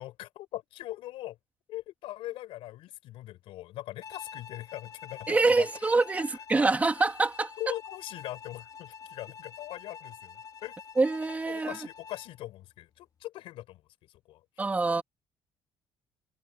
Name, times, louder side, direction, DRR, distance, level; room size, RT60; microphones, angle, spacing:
voice 1, 0.0-1.4 1.7-5.9 6.2-6.3 7.6-10.7 11.5-14.4 14.8-15.0, left 15 dB, 85° left, 5.2 m, -41 dB
Bowed string instrument, 4.0-12.4, left 7 dB, 40° left, 3.1 m, -47 dB
voice 2, 5.3-7.5 11.0-11.8 14.6-15.0, right 3 dB, 15° right, 3.2 m, -25 dB
cardioid pair, 150°, 9 cm